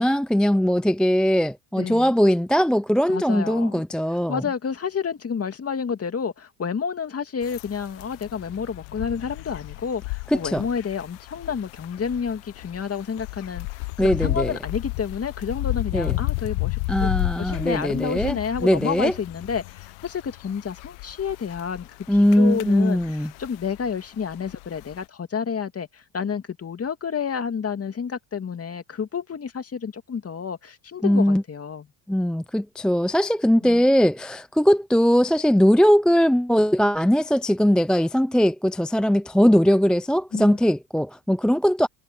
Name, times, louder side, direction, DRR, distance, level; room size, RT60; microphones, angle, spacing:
voice 1, 0.0-4.4 10.3-10.6 14.0-14.6 15.9-16.2 16.9-19.1 22.1-23.3 31.0-31.4 32.1-41.9, equal, ahead, 0.5 m, -20 dB
voice 2, 1.8-2.1 3.1-3.8 4.3-17.1 17.4-21.9 22.3-23.0 23.4-31.8 33.6-33.8 40.3-40.6, left 6 dB, 30° left, 2.4 m, -30 dB
sound 1, 7.4-25.0, left 25 dB, 75° left, 0.9 m, -33 dB
supercardioid pair, 85°, 45 cm